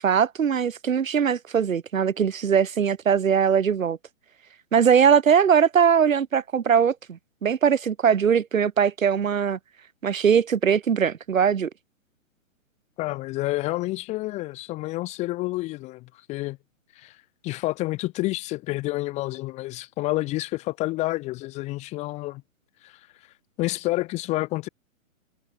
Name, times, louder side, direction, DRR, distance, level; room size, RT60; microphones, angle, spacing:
voice 1, 0.0-4.0 4.7-9.6 10.0-11.7, right 7 dB, 75° right, 4.8 m, -21 dB
voice 2, 13.0-16.6 16.9-17.2 17.4-22.4 22.8-23.0 23.6-24.7, left 19 dB, 15° left, 0.9 m, -29 dB
hypercardioid pair, 140°, 41 cm